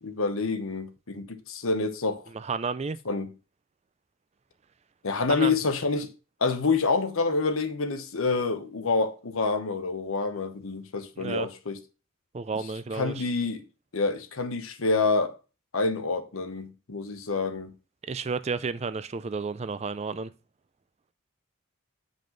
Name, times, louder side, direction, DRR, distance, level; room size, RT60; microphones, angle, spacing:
voice 1, 0.0-2.2 3.1-3.3 5.0-6.1 6.4-11.8 12.9-13.6 13.9-15.3 15.7-17.7, left 3 dB, 75° left, 1.0 m, -27 dB
voice 2, 2.3-3.0 5.3-5.6 11.2-11.5 12.3-13.2 18.0-20.3, right 4 dB, 30° right, 0.4 m, -31 dB
7.4 x 5.4 x 3.8 m
head